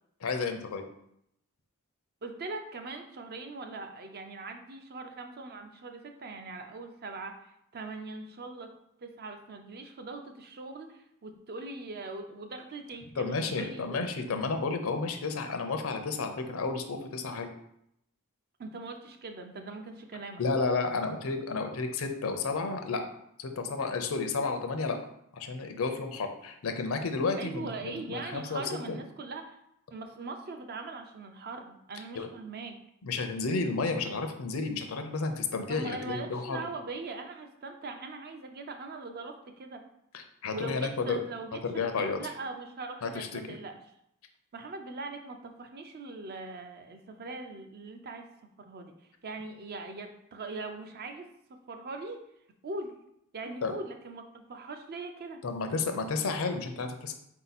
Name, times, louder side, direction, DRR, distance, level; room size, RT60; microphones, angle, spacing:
voice 1, 0.2-0.8 13.2-17.5 20.4-23.0 23.4-25.0 25.3-28.6 28.9-29.0 32.1-32.3 33.0-36.6 40.1-41.2 41.6-42.2 43.0-43.4 53.6-53.7 55.4-57.2, left 4 dB, 70° left, 6 dB, 0.6 m, -32 dB
voice 2, 2.2-8.7 9.0-14.0 18.6-20.4 27.4-29.6 29.9-32.8 35.7-39.8 40.5-41.6 41.9-43.8 44.5-48.3 48.6-48.9 49.2-52.2 52.6-52.9 53.3-55.4, right 3 dB, 45° right, 5 dB, 0.5 m, -41 dB
4.1 x 2.7 x 4.1 m, 0.76 s
head